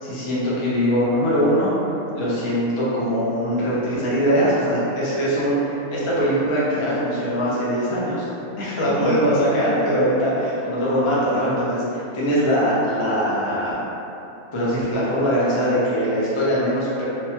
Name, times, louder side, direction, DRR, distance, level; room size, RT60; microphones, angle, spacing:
voice 1, 0.0-1.7 2.1-8.2 8.6-13.8 14.5-17.0, equal, 50° left, -8 dB, 0.3 m, -21 dB
3.2 x 2.1 x 2.7 m, 2.9 s
omnidirectional pair, 1.5 m